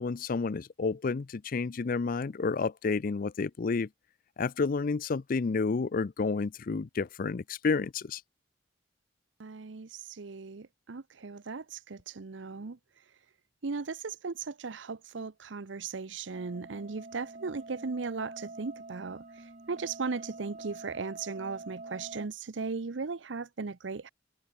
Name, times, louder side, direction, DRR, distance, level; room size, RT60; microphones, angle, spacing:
voice 1, 0.0-3.9 4.4-8.2, left 4 dB, 50° left, 0.5 m, -30 dB
voice 2, 9.4-12.8 13.6-24.1, right 4 dB, 75° right, 0.7 m, -37 dB
sound 1, 16.3-22.3, right 3 dB, 40° right, 2.2 m, -46 dB
head